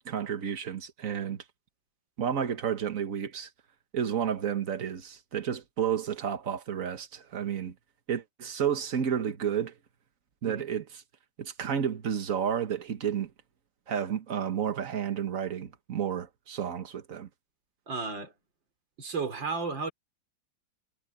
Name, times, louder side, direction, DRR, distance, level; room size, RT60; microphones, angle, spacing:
voice 1, 0.0-1.4 2.2-3.5 3.9-7.7 8.1-9.7 10.4-10.8 11.4-13.3 13.9-17.3, right 8 dB, 45° right, 1.6 m, -31 dB
voice 2, 17.9-18.3 19.0-19.9, right 4 dB, 75° right, 4.6 m, -33 dB
omnidirectional pair, 2.0 m